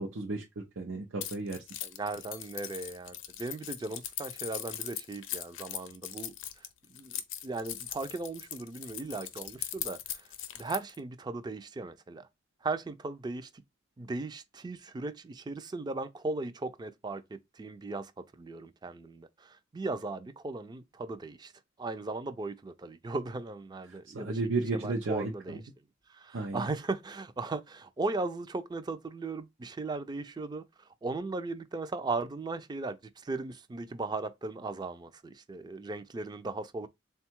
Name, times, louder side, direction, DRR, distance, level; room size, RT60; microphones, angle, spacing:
voice 1, 0.0-1.6 24.1-25.6 26.3-26.7, right 3 dB, 90° right, 0.6 m, -33 dB
Keys jangling, 1.2-11.0, left 11 dB, 90° left, 0.6 m, -40 dB
voice 2, 1.8-10.3 10.6-12.3 12.6-13.5 14.0-17.2 17.5-21.5 21.8-24.4 24.7-25.6 26.1-36.9, right 3 dB, 20° right, 0.4 m, -37 dB
3.6 x 2.3 x 4.4 m
head